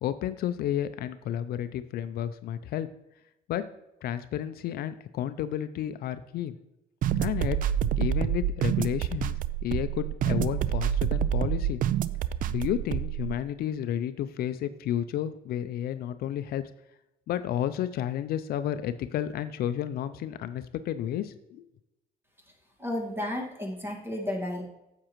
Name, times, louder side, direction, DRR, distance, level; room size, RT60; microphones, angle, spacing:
voice 1, 0.0-2.9 3.5-3.6 4.0-6.5 7.2-7.6 8.0-11.8 12.5-16.7 17.3-21.6, left 11 dB, 65° left, 12 dB, 0.4 m, -31 dB
sound 1, 7.0-13.3, right 10 dB, 55° right, 0.4 m, -27 dB
voice 2, 22.8-24.6, left 1 dB, 15° right, 1 dB, 1.8 m, -32 dB
9.7 x 7.4 x 3.0 m, 0.90 s
cardioid pair, 110°, 17 cm